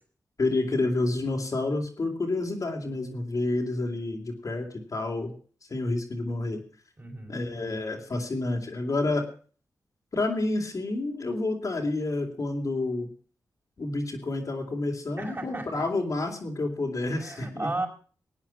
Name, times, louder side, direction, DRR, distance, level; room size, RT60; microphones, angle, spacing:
voice 1, 0.4-5.3 5.7-6.6 7.3-9.2 10.1-13.1 13.8-17.7, left 2 dB, 55° left, 1 dB, 3.4 m, -29 dB
voice 2, 7.0-7.4 15.2-15.9 17.1-17.9, right 2 dB, 35° right, 2 dB, 5.7 m, -34 dB
18.0 x 9.0 x 5.8 m, 0.41 s
cardioid pair, 50°, 7 cm